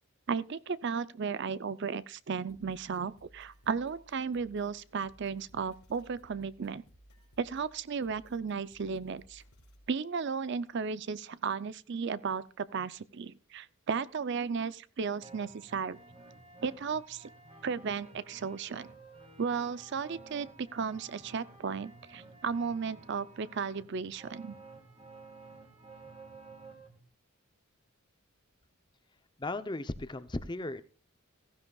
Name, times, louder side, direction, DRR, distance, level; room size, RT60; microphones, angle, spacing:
voice 1, 0.3-6.8 7.4-9.4 9.9-16.0 16.6-17.3 17.6-18.9 19.4-24.6, right 5 dB, 50° right, 0.5 m, -35 dB
sound 1, 2.5-9.9, equal, 90° left, 4.1 m, -60 dB
sound 2, 15.2-27.0, right 3 dB, 25° right, 2.1 m, -53 dB
voice 2, 29.4-30.8, left 2 dB, 20° left, 0.6 m, -36 dB
16.0 x 15.0 x 2.3 m
head